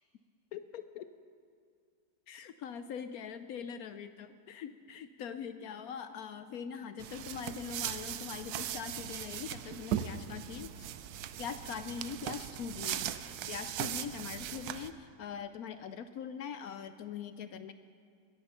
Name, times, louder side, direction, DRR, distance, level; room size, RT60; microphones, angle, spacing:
voice 1, 0.5-1.1 2.3-10.9 11.4-13.1 13.5-17.7, left 7 dB, 70° left, 10 dB, 0.9 m, -42 dB
sound 1, 7.0-14.9, right 10 dB, 70° right, 1.0 m, -39 dB
21.0 x 10.0 x 5.5 m, 2.2 s
omnidirectional pair, 1.9 m